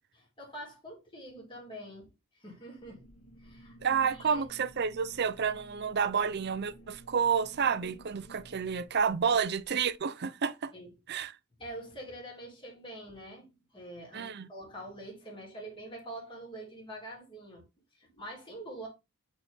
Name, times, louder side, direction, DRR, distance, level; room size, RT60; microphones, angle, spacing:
voice 1, 0.2-3.1 3.4-4.4 9.3-9.4 10.7-10.9 11.6-17.6 17.9-18.9, right 1 dB, 25° left, 3.7 m, -45 dB
sound 1, 2.8-9.9, right 1 dB, 85° left, 2.0 m, -54 dB
voice 2, 3.8-10.7 11.1-11.3 14.1-14.5, right 6 dB, 50° right, 0.6 m, -30 dB
8.5 x 4.3 x 3.5 m
head